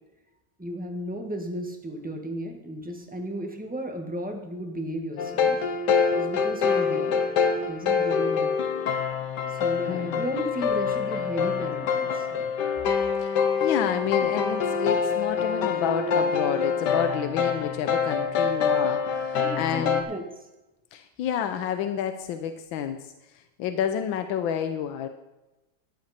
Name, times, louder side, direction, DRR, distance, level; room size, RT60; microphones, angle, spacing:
voice 1, 0.6-5.6 6.1-7.2 7.6-8.5 9.5-12.5 19.3-20.5, right 1 dB, 5° right, 3 dB, 1.3 m, -34 dB
sound 1, 5.2-20.0, left 6 dB, 65° left, 1.6 m, -25 dB
voice 2, 9.9-10.3 13.2-20.1 20.9-25.1, left 9 dB, 90° left, 9 dB, 1.5 m, -30 dB
13.5 x 10.5 x 4.3 m, 1.0 s
omnidirectional pair, 2.1 m